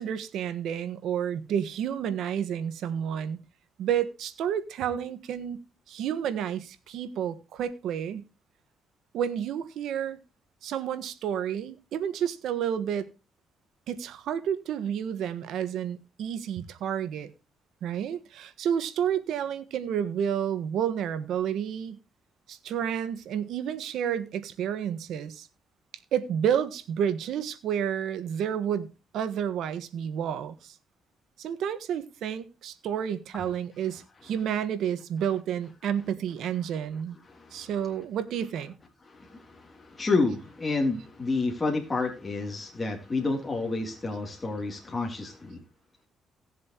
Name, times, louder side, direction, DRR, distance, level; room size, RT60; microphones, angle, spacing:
voice 1, 0.0-3.4 3.8-5.6 5.9-8.3 9.1-10.2 10.6-13.1 13.9-17.3 17.8-22.0 22.5-25.5 26.1-28.9 29.1-30.7 31.4-37.2 37.5-38.7, right 9 dB, 80° right, 1.5 m, -30 dB
voice 2, 37.3-37.7 39.0-45.6, left 3 dB, 25° left, 3.1 m, -30 dB
18.0 x 7.5 x 3.0 m
cardioid pair, 90°, 0 cm